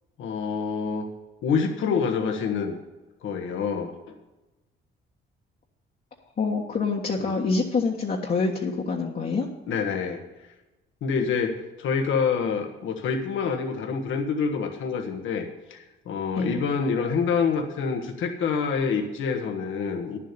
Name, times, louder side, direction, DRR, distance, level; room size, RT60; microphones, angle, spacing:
voice 1, 0.2-1.1 1.4-2.8 3.2-4.2 7.2-7.3 9.7-10.2 11.0-20.2, left 5 dB, 75° left, 4 dB, 1.5 m, -27 dB
voice 2, 6.4-9.5 16.4-16.6, left 4 dB, 50° left, -3 dB, 1.5 m, -26 dB
10.0 x 7.5 x 6.8 m, 1.1 s
cardioid pair, 90°, 20 cm